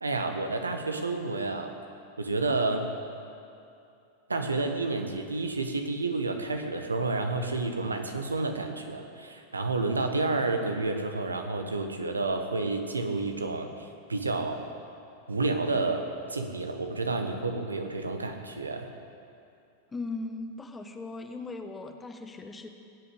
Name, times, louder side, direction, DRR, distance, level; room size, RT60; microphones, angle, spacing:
voice 1, 0.0-1.7 2.2-2.8 4.3-14.6 15.3-18.9, right 3 dB, 80° right, 5 dB, 1.4 m, -30 dB
voice 2, 19.9-22.7, left 3 dB, 15° left, 6 dB, 1.2 m, -38 dB
18.5 x 8.4 x 8.4 m, 2.6 s
figure-of-eight pair, 90°, 0 cm